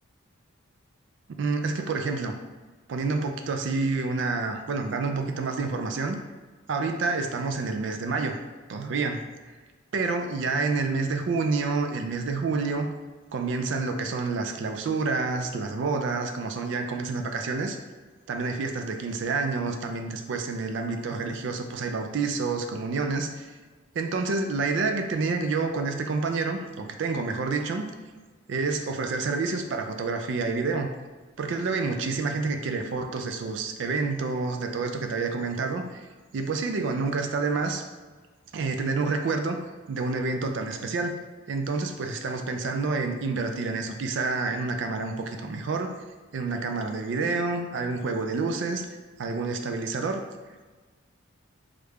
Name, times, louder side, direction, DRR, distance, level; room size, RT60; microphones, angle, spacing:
voice 1, 1.3-2.3 2.9-6.2 6.7-8.4 8.7-9.2 9.9-12.9 13.3-17.8 18.3-23.5 23.9-27.9 28.5-30.9 31.4-36.1 36.3-37.8 38.5-39.6 39.9-41.2 41.5-45.9 46.3-48.8 49.2-50.2, right 4 dB, 60° right, 5 dB, 0.3 m, -28 dB
3.1 x 2.4 x 3.3 m, 1.3 s
head